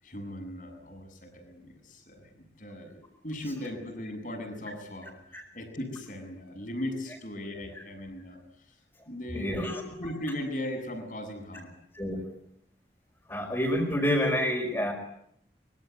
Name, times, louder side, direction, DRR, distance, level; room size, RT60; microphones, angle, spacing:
voice 1, 0.0-8.8 9.1-11.7 12.1-12.3, left 1 dB, 45° left, 5 dB, 7.5 m, -38 dB
voice 2, 9.3-9.8 11.9-12.3 13.3-14.9, equal, 15° left, -2 dB, 5.3 m, -28 dB
25.5 x 23.5 x 8.2 m, 0.71 s
head